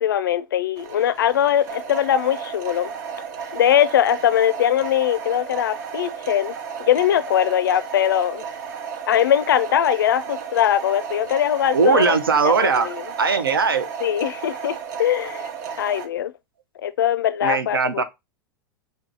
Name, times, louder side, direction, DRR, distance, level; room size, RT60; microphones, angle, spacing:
voice 1, 0.0-2.9 3.5-6.5 6.8-8.4 9.1-12.2 12.4-13.0 14.0-15.5 15.8-16.3 16.8-18.0, left 10 dB, 70° left, 0.4 m, -21 dB
sound 1, 0.8-16.1, right 6 dB, 55° right, 0.8 m, -33 dB
voice 2, 11.7-12.9 13.2-13.9 17.4-18.0, right 5 dB, 80° right, 0.6 m, -19 dB
4.6 x 2.8 x 3.3 m
figure-of-eight pair, 90°, 12 cm